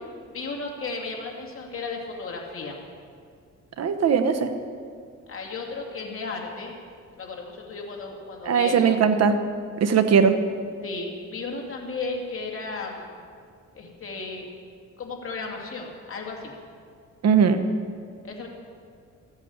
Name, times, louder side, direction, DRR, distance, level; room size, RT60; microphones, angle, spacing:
voice 1, 0.3-2.8 5.3-6.7 7.1-9.0 10.8-13.2 13.7-14.5 15.0-16.5 18.2-18.5, left 3 dB, 45° left, 0 dB, 2.5 m, -34 dB
voice 2, 3.8-4.5 8.5-9.3 9.8-10.3 17.2-17.6, right 6 dB, 60° right, 8 dB, 1.1 m, -19 dB
13.5 x 8.4 x 8.1 m, 2.2 s
cardioid pair, 95°, 29 cm